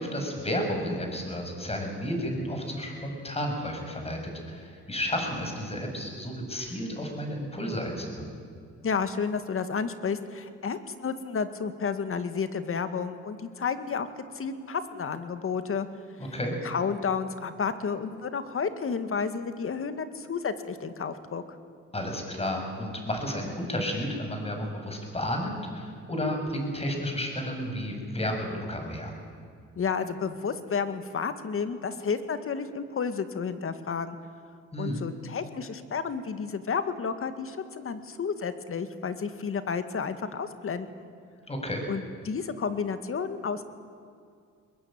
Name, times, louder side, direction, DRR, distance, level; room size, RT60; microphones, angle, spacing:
voice 1, 0.0-8.2 16.2-16.5 21.9-29.1 34.7-35.0 41.5-41.9, equal, 20° left, 3 dB, 6.8 m, -32 dB
voice 2, 8.8-15.9 16.6-21.6 29.8-34.2 34.8-40.9 41.9-43.6, left 6 dB, 45° left, 10 dB, 2.1 m, -31 dB
22.0 x 21.5 x 9.0 m, 2.3 s
cardioid pair, 90°, 30 cm